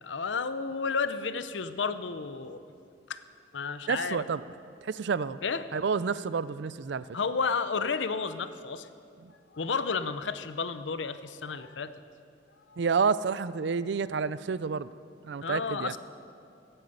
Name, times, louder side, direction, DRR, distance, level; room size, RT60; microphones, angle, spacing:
voice 1, 0.0-2.6 3.1-3.2 3.5-4.2 5.4-5.6 7.1-8.9 9.5-11.9 12.7-12.8 15.4-16.0, left 5 dB, 90° left, 12 dB, 0.7 m, -32 dB
voice 2, 3.9-4.4 4.8-5.4 5.7-7.0 9.2-9.3 12.8-14.9 15.2-15.9, right 5 dB, 70° right, 17 dB, 0.4 m, -29 dB
16.0 x 9.0 x 8.1 m, 2.5 s
head